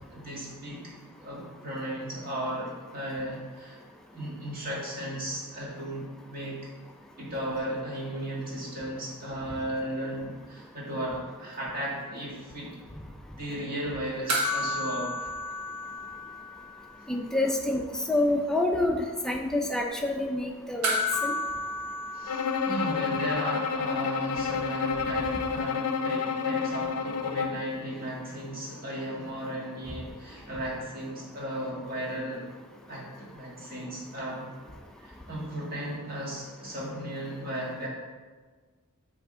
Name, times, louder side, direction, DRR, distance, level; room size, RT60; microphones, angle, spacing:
voice 1, 0.1-0.9 1.2-3.8 4.1-6.7 7.2-12.7 13.3-15.3 17.0-17.1 19.2-19.3 22.1-32.5 32.9-34.5 35.0-37.9, right 1 dB, 40° right, -5 dB, 1.8 m, -35 dB
sound 1, 14.3-17.0 17.2-17.3 20.8-23.4 25.6-25.7, left 1 dB, 90° right, 1.0 m, -32 dB
voice 2, 17.1-17.8 18.1-19.0 19.2-21.0 21.2-21.3, left 2 dB, 5° left, 0 dB, 0.5 m, -27 dB
Bowed string instrument, 22.3-27.7, left 5 dB, 90° left, 0.5 m, -30 dB
8.5 x 3.5 x 3.7 m, 1.4 s
head